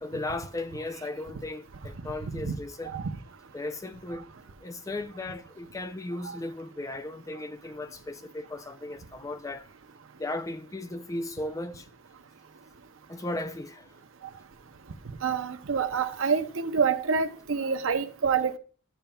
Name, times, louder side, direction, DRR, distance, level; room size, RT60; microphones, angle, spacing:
voice 1, 0.0-3.0 3.5-4.3 4.6-9.7 10.2-11.9 13.1-13.9, left 2 dB, 15° left, 0.3 m, -36 dB
voice 2, 15.2-18.6, right 5 dB, 65° right, 0.7 m, -27 dB
11.5 x 7.0 x 2.3 m
head